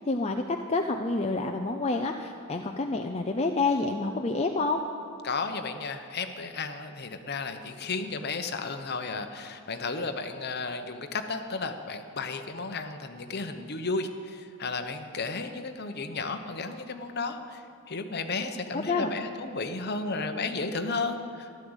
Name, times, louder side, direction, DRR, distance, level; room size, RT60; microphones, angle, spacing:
voice 1, 0.0-4.8 18.7-19.2, left 3 dB, 30° left, 3 dB, 0.6 m, -28 dB
voice 2, 5.2-17.6 17.9-21.5, left 3 dB, 50° left, 7 dB, 1.0 m, -33 dB
13.5 x 12.0 x 8.1 m, 2.5 s
head